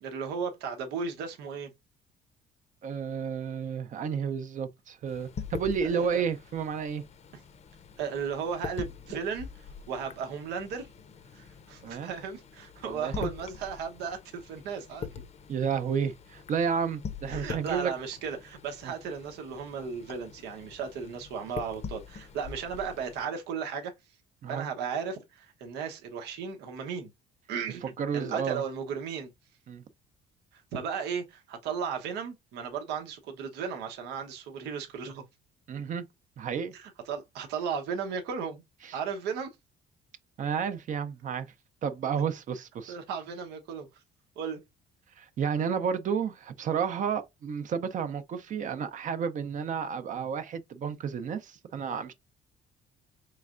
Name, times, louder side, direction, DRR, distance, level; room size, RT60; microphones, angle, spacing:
voice 1, 0.0-1.7 5.8-6.2 8.0-10.9 11.3-15.1 17.3-23.9 24.5-27.1 27.5-29.3 30.5-35.2 36.7-38.6 38.9-39.5 42.9-43.9 44.4-44.6, right 6 dB, 85° right, 0.9 m, -35 dB
voice 2, 2.8-7.0 11.8-12.1 12.8-13.3 15.5-17.9 18.8-18.9 24.4-24.7 28.0-28.6 29.7-29.8 35.7-36.0 36.4-36.7 38.9-39.0 40.4-41.5 41.8-43.0 45.2-52.1, right 7 dB, 50° right, 0.6 m, -31 dB
sound 1, 5.1-23.2, left 6 dB, 40° left, 0.6 m, -44 dB
4.7 x 3.2 x 2.4 m
cardioid pair, 110°, 17 cm